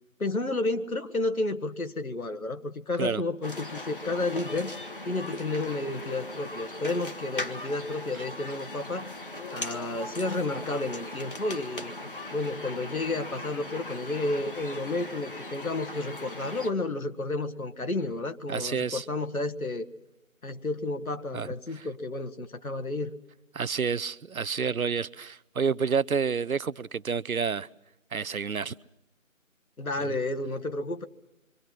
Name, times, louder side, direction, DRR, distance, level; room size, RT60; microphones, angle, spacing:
voice 1, 0.2-4.7 5.1-9.1 9.5-11.9 12.3-19.9 20.4-23.1 29.8-31.0, left 2 dB, 85° left, 1.8 m, -31 dB
sound 1, 3.4-16.7, left 2 dB, 40° left, 1.4 m, -39 dB
voice 2, 18.5-19.1 21.3-21.9 23.5-27.7 28.1-28.8 30.0-30.1, right 6 dB, 85° right, 0.8 m, -29 dB
27.5 x 24.0 x 6.0 m
figure-of-eight pair, 170°, 42 cm